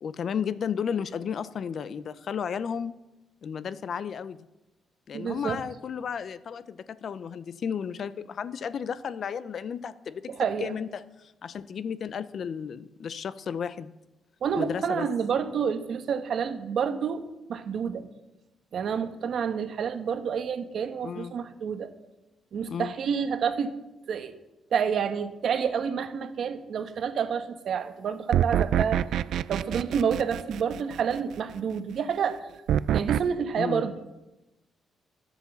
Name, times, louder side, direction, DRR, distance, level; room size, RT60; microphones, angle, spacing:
voice 1, 0.0-2.9 3.4-4.4 5.1-10.3 10.6-13.9 14.6-15.1 21.0-21.3 22.7-22.9 33.6-33.9, left 7 dB, 55° left, 15 dB, 0.6 m, -33 dB
voice 2, 5.1-5.6 10.3-10.7 14.4-17.2 17.5-18.1 18.7-21.9 22.5-23.7 24.1-24.3 24.7-29.0 29.5-32.5 32.9-33.9, right 7 dB, 60° right, 9 dB, 1.1 m, -29 dB
sound 1, 28.3-31.2 32.7-33.2, right 10 dB, 80° right, 0.3 m, -26 dB
11.5 x 8.1 x 7.1 m, 0.97 s
cardioid pair, 115°, 0 cm